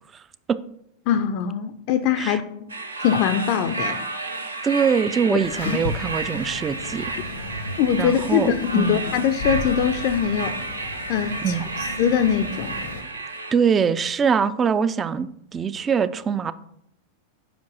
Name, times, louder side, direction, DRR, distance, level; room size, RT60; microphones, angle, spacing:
voice 1, 1.1-2.4 3.0-4.0 5.3-5.4 5.7-5.8 7.8-10.5 11.1-11.6 12.0-12.7, left 8 dB, 45° left, 10 dB, 0.5 m, -22 dB
sound 1, 2.7-13.5, right 3 dB, 75° right, 0.7 m, -32 dB
voice 2, 4.6-7.1 8.0-9.0 11.4-11.7 13.5-16.5, right 6 dB, 20° right, 15 dB, 0.4 m, -23 dB
sound 2, 5.4-13.0, left 2 dB, 70° left, 0.8 m, -35 dB
5.2 x 5.1 x 6.2 m, 0.74 s
figure-of-eight pair, 90°, 0 cm